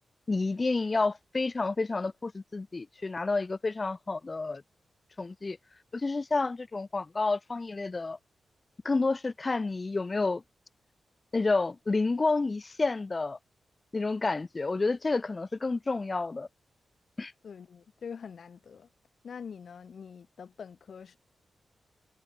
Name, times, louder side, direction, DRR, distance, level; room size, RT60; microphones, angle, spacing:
voice 1, 0.3-4.6 5.2-5.6 5.9-8.2 8.8-10.4 11.3-13.4 13.9-16.5 17.2-17.3, left 3 dB, 30° left, 1.1 m, -29 dB
voice 2, 17.4-18.9 19.2-21.2, left 6 dB, 65° left, 2.1 m, -44 dB
wide cardioid pair, 100°, 0 cm